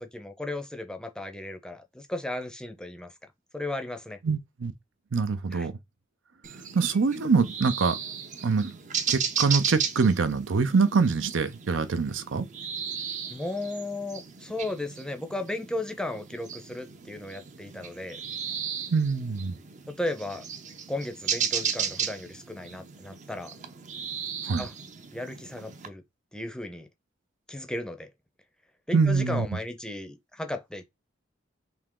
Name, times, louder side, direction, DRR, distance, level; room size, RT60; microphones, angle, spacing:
voice 1, 0.0-3.1 3.5-4.2 5.5-5.7 13.3-18.2 19.9-20.4 20.9-23.5 24.6-24.7 25.1-26.0 26.3-26.9 27.5-28.1 28.9-30.9, left 1 dB, 5° left, 0.5 m, -35 dB
voice 2, 4.2-4.7 5.1-5.7 6.7-8.0 8.4-8.8 9.1-12.5 18.9-19.6 24.4-24.7 28.9-29.5, right 4 dB, 85° right, 0.6 m, -24 dB
sound 1, 6.4-25.9, right 7 dB, 40° right, 0.5 m, -35 dB
3.5 x 2.8 x 3.7 m
head